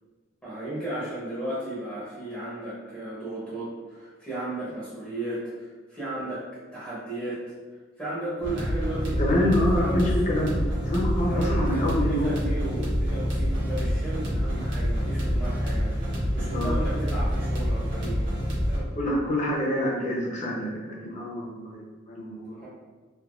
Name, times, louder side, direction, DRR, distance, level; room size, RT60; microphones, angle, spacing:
voice 1, 0.4-7.4 8.0-10.5 11.2-18.9 22.6-22.7, right 1 dB, 5° left, -10 dB, 0.7 m, -35 dB
sound 1, 8.4-18.8, equal, 65° right, 0.9 m, -27 dB
voice 2, 9.2-12.4 16.5-16.7 19.0-22.7, left 1 dB, 35° left, -3 dB, 0.7 m, -27 dB
3.4 x 2.8 x 2.5 m, 1.4 s
head